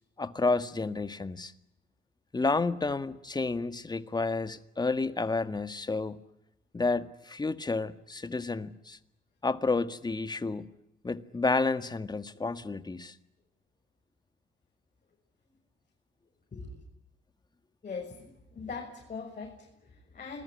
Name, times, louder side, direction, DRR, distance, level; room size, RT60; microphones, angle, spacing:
voice 1, 0.2-1.5 2.3-6.2 6.7-9.0 9.4-10.6 11.0-13.1, left 3 dB, 20° left, 1.8 m, -30 dB
voice 2, 16.5-16.8 17.8-20.4, left 4 dB, 40° left, 7.0 m, -41 dB
28.0 x 20.5 x 9.9 m
cardioid pair, 90°, 20 cm